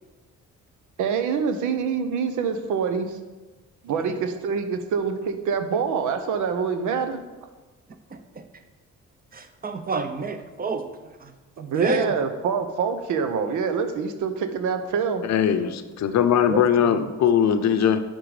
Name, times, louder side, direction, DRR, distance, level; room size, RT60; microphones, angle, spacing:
voice 1, 1.0-3.2 3.8-7.2 11.7-15.2, right 6 dB, 80° right, 8 dB, 0.8 m, -25 dB
voice 2, 8.1-8.4 9.3-10.9 11.2-11.3 11.6-12.2 16.5-17.0, right 3 dB, 30° right, 8 dB, 0.8 m, -29 dB
voice 3, 15.2-18.0, left 8 dB, 65° left, 10 dB, 0.7 m, -20 dB
10.0 x 3.8 x 4.9 m, 1.2 s
cardioid pair, 90°, 30 cm